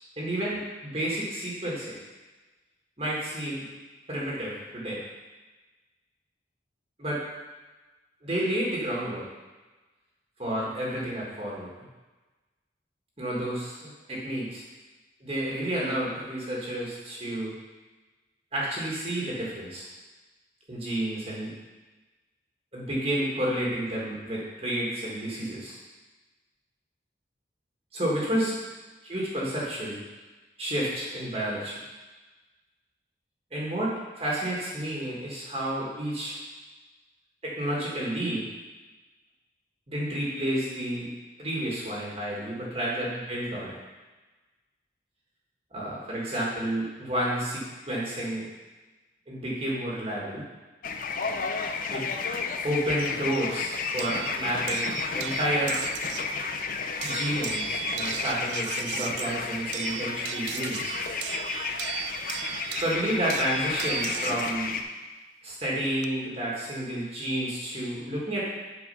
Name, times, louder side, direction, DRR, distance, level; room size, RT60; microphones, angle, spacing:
voice 1, 0.2-1.9 3.0-3.7 4.1-5.0 7.0-7.2 8.2-9.2 10.4-11.9 13.2-14.6 15.2-17.5 18.5-19.8 20.7-21.5 22.7-25.8 27.9-28.6 29.0-30.0 30.6-31.8 33.5-36.3 37.4-38.4 39.9-41.1 41.4-43.8 45.7-48.5 49.3-50.4 51.9-52.0 52.6-55.8 57.0-60.9 62.8-64.8 65.4-68.4, right 1 dB, 35° right, -5 dB, 1.6 m, -30 dB
sound 1, 50.8-64.8, left 5 dB, 50° left, 0.5 m, -32 dB
sound 2, 54.0-56.4 57.0-64.5 65.6-66.1, right 11 dB, 70° right, 0.3 m, -37 dB
8.5 x 4.5 x 5.5 m, 1.2 s
head